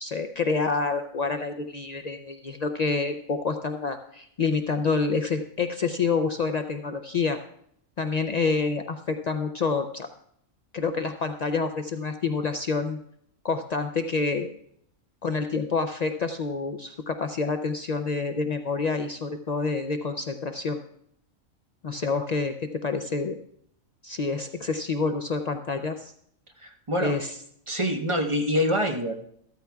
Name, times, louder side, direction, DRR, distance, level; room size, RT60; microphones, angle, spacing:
voice 1, 0.0-7.4 8.0-10.1 10.7-13.0 13.4-14.5 15.2-20.8 21.8-23.4 24.0-26.1 27.0-27.3, left 4 dB, 90° left, 7 dB, 0.3 m, -28 dB
voice 2, 26.6-27.1 27.7-29.1, equal, 25° right, 2 dB, 0.9 m, -25 dB
14.0 x 13.0 x 2.3 m, 0.69 s
omnidirectional pair, 1.4 m